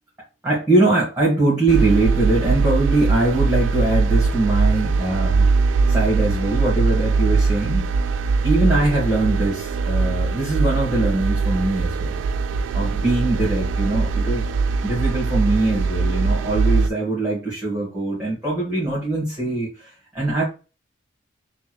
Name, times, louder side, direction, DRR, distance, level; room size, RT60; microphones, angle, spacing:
voice 1, 0.4-5.5 5.9-7.9 8.4-12.2 12.7-14.5 14.8-20.4, right 2 dB, 10° right, 1.6 m, -22 dB
sound 1, 1.7-16.9, right 4 dB, 70° right, 0.3 m, -21 dB
3.5 x 2.3 x 4.4 m
head